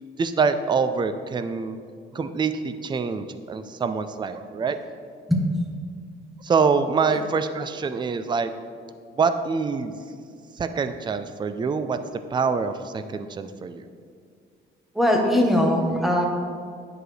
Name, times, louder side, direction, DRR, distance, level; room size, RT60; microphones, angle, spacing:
voice 1, 0.2-1.8 2.1-4.8 6.4-8.5 9.2-9.9 10.6-12.0 12.3-13.8, right 5 dB, 25° right, 10 dB, 0.4 m, -25 dB
voice 2, 14.9-16.3, left 1 dB, ahead, 0 dB, 1.1 m, -20 dB
10.0 x 4.8 x 3.2 m, 2.1 s
cardioid pair, 90°, 20 cm